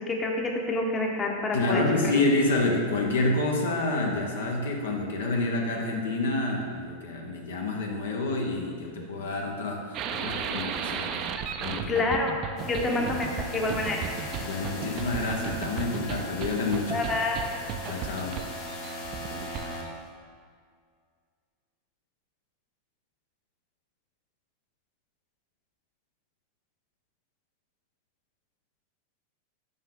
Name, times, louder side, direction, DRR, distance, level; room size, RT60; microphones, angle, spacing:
voice 1, 0.1-1.8 11.9-12.3 12.6-14.1 16.9-17.6, left 2 dB, 25° left, 1 dB, 0.9 m, -28 dB
voice 2, 1.5-11.3 11.6-12.0 12.9-13.0 14.4-17.0 17.8-18.4, left 2 dB, 75° left, 1 dB, 0.8 m, -28 dB
sound 1, 9.9-19.9, right 7 dB, 45° right, 0.4 m, -35 dB
sound 2, 12.6-20.1, equal, 45° left, 1.3 m, -39 dB
5.4 x 5.4 x 3.7 m, 2.1 s
hypercardioid pair, 95°, 0 cm